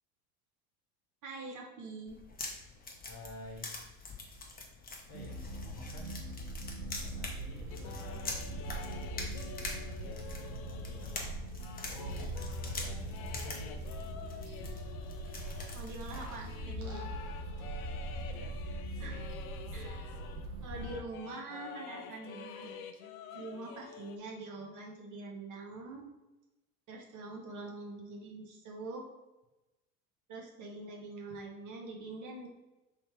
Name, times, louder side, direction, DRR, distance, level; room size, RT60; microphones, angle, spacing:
voice 1, 1.2-2.2 15.7-17.1 19.0-19.3 19.7-20.2 20.6-22.8 23.3-26.1 26.9-29.1 30.3-32.5, right 3 dB, 40° right, -1 dB, 1.1 m, -44 dB
sound 1, 2.1-16.6, left 3 dB, 20° left, 0.8 m, -45 dB
voice 2, 3.0-3.7 5.1-6.2 6.8-11.4 11.8-12.3 12.7-13.9 18.2-18.7, left 2 dB, 50° left, 1 dB, 1.2 m, -51 dB
sound 2, 5.1-21.0, right 1 dB, 75° right, 1.0 m, -41 dB
sound 3, 7.7-20.5 20.7-24.2, left 7 dB, 65° left, 0.6 m, -49 dB
3.3 x 3.1 x 4.6 m, 1.0 s
hypercardioid pair, 70°, 45 cm